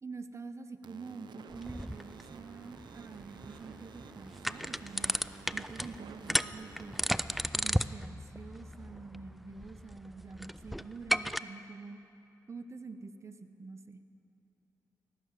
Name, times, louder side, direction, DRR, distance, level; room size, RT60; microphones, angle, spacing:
voice 1, 0.0-5.1 5.5-7.0 7.5-12.0 12.5-14.0, right 4 dB, 40° right, 9 dB, 0.8 m, -46 dB
sound 1, 0.8-7.4, right 6 dB, 75° right, 0.6 m, -52 dB
sound 2, 1.5-11.4, equal, ahead, 0.3 m, -36 dB
17.5 x 6.7 x 8.2 m, 2.8 s
cardioid pair, 50°, 8 cm